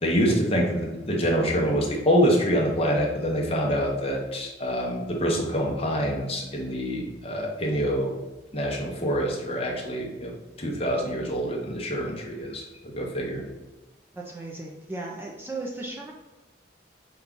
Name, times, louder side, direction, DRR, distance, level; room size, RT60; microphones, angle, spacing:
voice 1, 0.0-8.2 8.5-10.3 10.6-13.4, equal, 30° left, -1 dB, 0.8 m, -26 dB
voice 2, 14.1-16.1, right 2 dB, 10° right, -2 dB, 0.4 m, -36 dB
5.5 x 2.3 x 3.7 m, 1.1 s
head